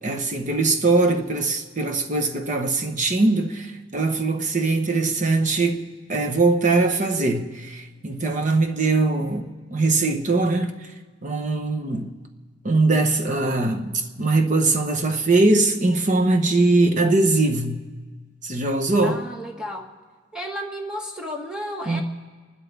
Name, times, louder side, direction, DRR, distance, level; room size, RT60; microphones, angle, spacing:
voice 1, 0.0-5.8 6.1-9.4 9.7-10.7 11.2-12.1 12.6-13.9 14.2-17.8 18.4-19.3 21.9-22.0, right 3 dB, 35° right, 1.1 m, -21 dB
voice 2, 19.0-19.9 20.3-22.0, equal, 5° right, 1.5 m, -32 dB
29.0 x 12.0 x 3.5 m
head